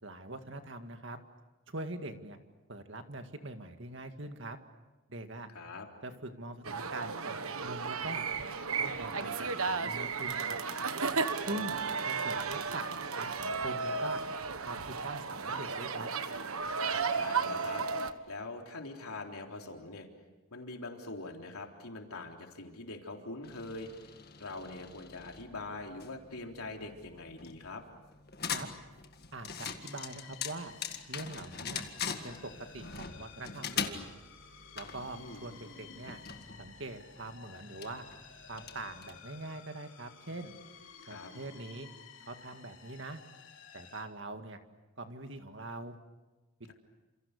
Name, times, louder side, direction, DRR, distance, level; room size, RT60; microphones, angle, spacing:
voice 1, 0.0-1.2 1.7-2.4 2.7-4.6 5.1-5.5 6.0-8.2 8.7-10.6 11.5-11.8 12.1-14.2 14.6-16.1 28.4-28.7 29.3-30.7 31.1-31.9 32.2-32.4 32.7-34.1 34.7-36.2 36.6-38.0 38.5-40.6 41.1-41.9 42.3-43.2 43.7-44.6 45.0-46.0, right 2 dB, 55° right, 7 dB, 2.1 m, -43 dB
voice 2, 5.5-5.9 11.5-11.8 16.8-20.1 20.5-24.1 24.4-27.8 35.1-35.5 41.0-41.3, left 2 dB, 90° left, 2 dB, 3.6 m, -43 dB
sound 1, 6.6-18.1, right 5 dB, 80° right, 1.4 m, -34 dB
sound 2, 23.4-39.4, left 6 dB, 45° left, 1.9 m, -43 dB
sound 3, 29.8-44.0, left 6 dB, 60° left, 3.5 m, -54 dB
29.0 x 27.5 x 6.7 m, 1.1 s
head